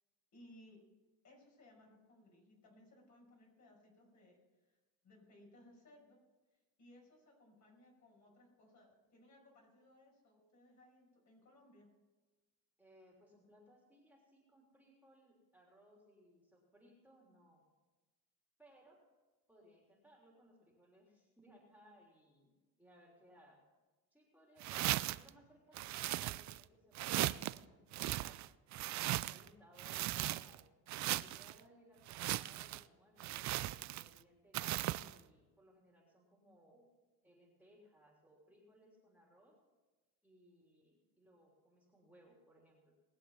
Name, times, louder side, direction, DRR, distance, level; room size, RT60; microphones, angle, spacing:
voice 1, 0.3-0.8 1.2-4.8 5.0-6.2 6.5-11.9, left 1 dB, 45° left, 0 dB, 5.7 m, -63 dB
voice 2, 12.8-17.6 18.6-19.0 19.5-22.5 22.8-23.6 24.1-28.5 29.1-30.6 31.0-36.9 37.2-39.6 40.2-42.9, equal, 5° right, -2 dB, 3.3 m, -65 dB
sound 1, 24.6-25.3 25.8-26.6 27.0-27.6 27.9-29.5 29.8-30.6 30.9-31.5 32.1-32.8 33.2-34.2 34.5-35.1, right 15 dB, 50° right, 0.4 m, -38 dB
20.5 x 7.8 x 5.7 m, 1.2 s
cardioid pair, 115°, 39 cm